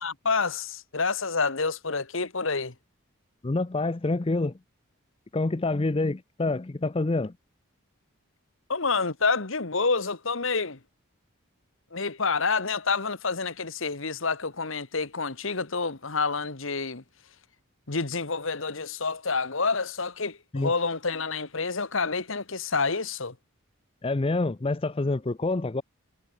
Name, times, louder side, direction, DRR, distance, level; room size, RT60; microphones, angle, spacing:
voice 1, 0.0-2.7 8.7-10.8 11.9-17.0 17.9-23.3, left 4 dB, 65° left, 1.6 m, -28 dB
voice 2, 3.4-4.5 5.3-7.3 20.5-20.7 24.0-25.8, left 2 dB, 25° left, 0.5 m, -27 dB
head